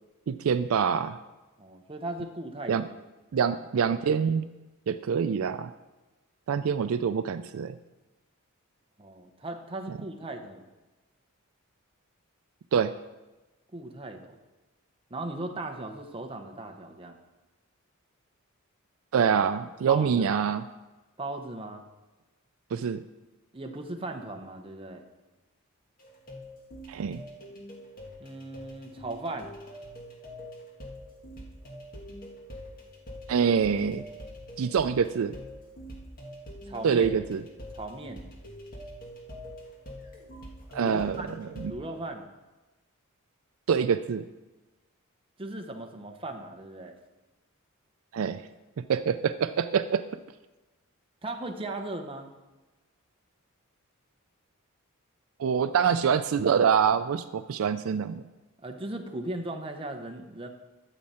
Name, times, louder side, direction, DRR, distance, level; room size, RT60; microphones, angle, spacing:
voice 1, 0.3-1.2 2.7-2.8 3.3-4.5 4.9-5.7 6.5-7.8 9.9-10.0 12.7-12.9 19.1-20.6 22.7-23.0 26.9-27.2 33.3-34.0 34.6-35.3 36.8-37.4 40.7-41.7 43.7-44.2 48.1-48.5 48.8-50.0 55.4-58.2, right 7 dB, 65° right, 11 dB, 0.4 m, -25 dB
voice 2, 1.6-2.9 9.0-10.6 13.7-14.3 15.1-17.2 19.9-20.4 21.2-21.8 23.5-25.0 28.2-29.5 36.6-37.1 37.7-38.3 40.8-41.4 41.7-42.2 45.4-46.9 51.2-52.3 58.6-60.5, right 2 dB, 25° right, 4 dB, 0.9 m, -37 dB
sound 1, 26.0-41.7, equal, 40° left, 1.8 m, -44 dB
12.0 x 7.5 x 4.3 m, 1.2 s
head